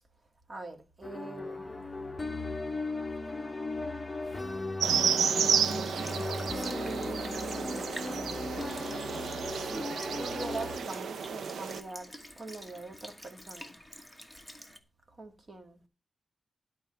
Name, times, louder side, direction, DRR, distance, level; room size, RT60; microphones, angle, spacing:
voice 1, 0.5-2.1 4.2-4.7 6.5-7.8 9.5-9.9 10.2-13.8 15.1-15.8, right 2 dB, 30° right, 1.8 m, -43 dB
sound 1, 1.0-10.8, left 2 dB, 20° left, 0.9 m, -37 dB
sound 2, 4.8-11.8, right 7 dB, 90° right, 0.6 m, -32 dB
Sink (filling or washing) / Liquid, 4.9-14.8, equal, 5° right, 1.3 m, -49 dB
11.5 x 4.6 x 7.7 m
wide cardioid pair, 150°, 0 cm